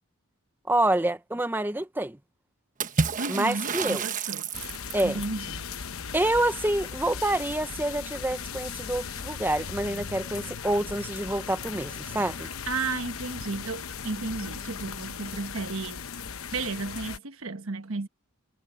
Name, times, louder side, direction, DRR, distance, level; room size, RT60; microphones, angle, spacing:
voice 1, 0.7-2.2 3.3-4.0 4.9-5.2 6.1-12.5, right 1 dB, 10° right, 0.6 m, -27 dB
Water / Splash splatter, 2.8-5.2, right 5 dB, 35° right, 1.2 m, -30 dB
voice 2, 3.2-4.5 5.0-5.7 12.4-16.1 16.5-18.1, right 3 dB, 65° right, 1.3 m, -33 dB
sound 1, 4.5-17.2, left 6 dB, 70° left, 0.9 m, -38 dB
head